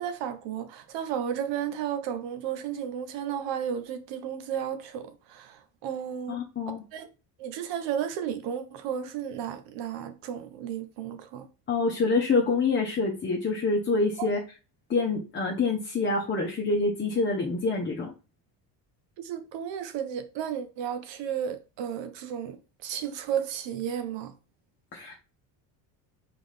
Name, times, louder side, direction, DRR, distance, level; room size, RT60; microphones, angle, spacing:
voice 1, 0.0-6.4 6.7-7.1 7.4-11.5 14.2-14.3 19.2-24.3, right 9 dB, 70° right, 0.9 m, -33 dB
voice 2, 6.3-6.8 11.7-14.4 14.9-18.1 24.9-25.1, left 3 dB, 25° left, 0.9 m, -26 dB
3.9 x 3.8 x 3.3 m
supercardioid pair, 95°, 45 cm